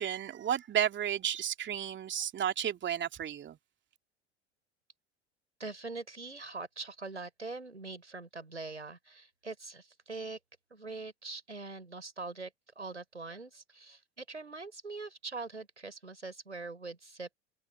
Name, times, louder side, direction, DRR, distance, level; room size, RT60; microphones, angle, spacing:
voice 1, 0.0-3.6, right 9 dB, 35° right, 3.1 m, -32 dB
voice 2, 5.6-10.4 10.7-12.5 12.8-17.3, right 3 dB, 90° right, 5.6 m, -43 dB
figure-of-eight pair, 70°, 34 cm